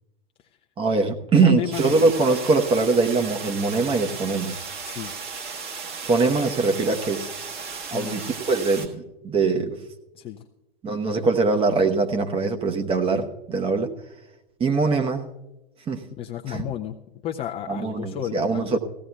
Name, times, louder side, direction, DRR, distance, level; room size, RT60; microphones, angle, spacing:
voice 1, 0.8-4.6 6.0-7.3 7.9-9.8 10.8-13.9 14.6-15.2 15.9-16.0 16.5-16.6 17.7-18.8, right 4 dB, 20° right, 5 dB, 1.0 m, -22 dB
voice 2, 1.3-2.1 4.8-5.1 7.9-8.2 10.1-10.4 16.2-17.0 17.2-18.8, left 11 dB, 20° left, 2 dB, 0.5 m, -32 dB
sound 1, 1.7-8.9, right 5 dB, 35° right, 1.6 m, -35 dB
19.0 x 16.0 x 2.3 m, 1.0 s
figure-of-eight pair, 105°, 30 cm